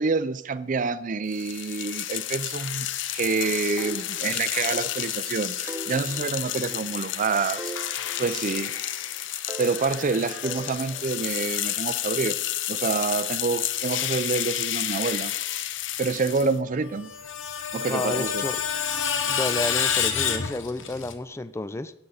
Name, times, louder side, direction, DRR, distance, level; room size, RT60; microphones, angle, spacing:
voice 1, 0.0-2.9 3.1-7.7 8.2-8.7 9.6-12.4 12.7-15.3 16.0-17.1 17.7-18.4, right 4 dB, 45° right, 0.5 m, -27 dB
sound 1, 1.3-16.6, left 12 dB, 70° left, 0.5 m, -31 dB
sound 2, 3.8-4.9 5.2-5.3 5.7-7.2 7.6-9.0 9.5-11.3, right 2 dB, 15° right, 0.9 m, -41 dB
Screech, 16.9-21.1, left 7 dB, 85° left, 1.0 m, -27 dB
voice 2, 17.8-18.6 19.3-21.9, left 2 dB, 15° left, 0.4 m, -31 dB
15.0 x 7.9 x 4.0 m
head